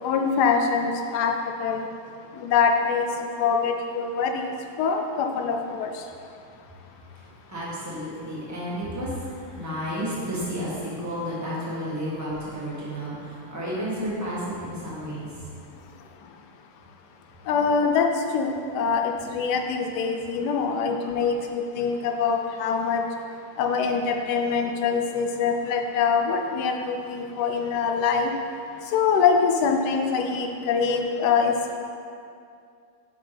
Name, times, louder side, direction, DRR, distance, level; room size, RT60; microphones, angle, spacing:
voice 1, 0.0-1.3 1.6-1.9 2.4-3.0 3.4-4.4 4.8-5.9 17.5-18.1 18.3-23.0 23.6-28.3 28.9-31.8, left 5 dB, 85° left, 3 dB, 1.2 m, -24 dB
voice 2, 7.1-15.5, equal, 10° right, -8 dB, 1.3 m, -32 dB
7.1 x 5.2 x 3.3 m, 2.5 s
omnidirectional pair, 1.7 m